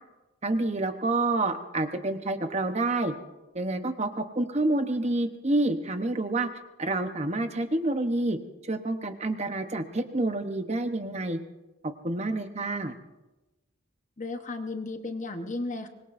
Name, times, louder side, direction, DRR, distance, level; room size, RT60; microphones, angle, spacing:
voice 1, 0.4-3.1 3.5-6.5 6.8-8.4 8.7-11.4 11.8-12.9, right 2 dB, 30° right, 7 dB, 0.9 m, -28 dB
voice 2, 14.2-15.9, left 2 dB, 35° left, 6 dB, 1.0 m, -34 dB
24.5 x 21.5 x 2.6 m, 1.0 s
head